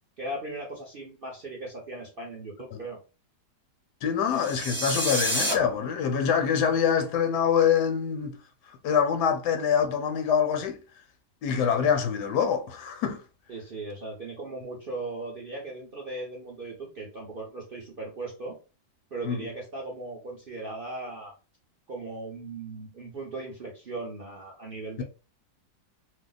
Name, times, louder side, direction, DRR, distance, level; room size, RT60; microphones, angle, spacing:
voice 1, 0.2-3.0 13.5-18.6 19.1-21.3 21.9-25.0, right 2 dB, 55° right, 0.6 m, -38 dB
voice 2, 4.0-8.4 8.8-10.8 11.4-13.2 19.2-19.4 25.0-25.1, left 7 dB, 80° left, 1.1 m, -25 dB
sound 1, 4.3-5.5, equal, 10° left, 0.6 m, -28 dB
2.8 x 2.0 x 3.8 m
omnidirectional pair, 1.8 m